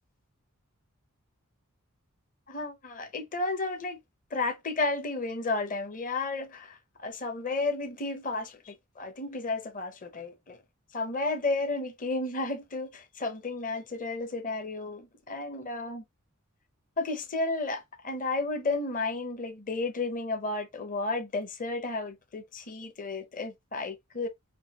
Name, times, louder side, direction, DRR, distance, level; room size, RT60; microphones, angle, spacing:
voice 1, 2.5-4.0 4.3-10.6 10.9-16.0 17.0-24.3, left 3 dB, 40° left, 0.8 m, -32 dB
5.5 x 2.3 x 2.9 m
head